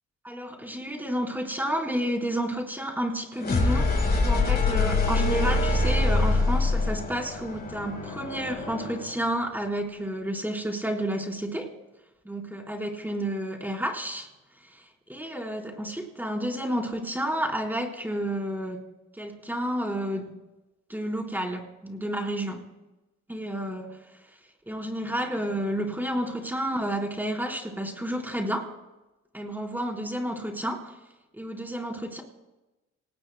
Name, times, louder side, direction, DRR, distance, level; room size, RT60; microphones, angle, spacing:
voice 1, 0.2-3.9 4.2-11.7 12.2-14.3 14.6-18.8 19.1-20.3 20.9-22.7 23.3-24.0 24.7-28.7 29.3-31.0 31.3-32.2, right 1 dB, 5° right, 0 dB, 4.1 m, -31 dB
sound 1, 3.4-9.2, left 2 dB, 35° left, 4.1 m, -25 dB
27.0 x 19.0 x 2.2 m, 1.1 s
cardioid pair, 90°, 30 cm